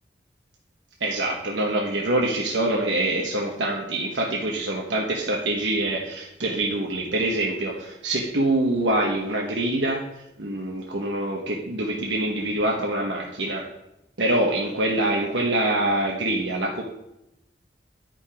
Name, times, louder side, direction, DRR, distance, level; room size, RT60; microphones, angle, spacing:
voice 1, 1.0-13.7 14.2-16.8, right 1 dB, 85° right, -1 dB, 1.1 m, -25 dB
10.5 x 5.2 x 5.0 m, 0.88 s
head